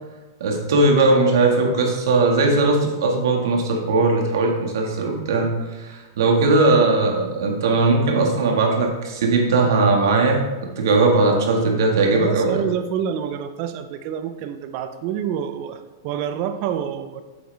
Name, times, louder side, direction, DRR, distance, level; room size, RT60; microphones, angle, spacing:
voice 1, 0.4-10.4 10.8-12.6, right 3 dB, 70° right, 1 dB, 1.9 m, -19 dB
voice 2, 12.1-17.2, right 8 dB, 45° right, 9 dB, 0.7 m, -27 dB
8.2 x 7.8 x 3.4 m, 1.2 s
hypercardioid pair, 135°, 2 cm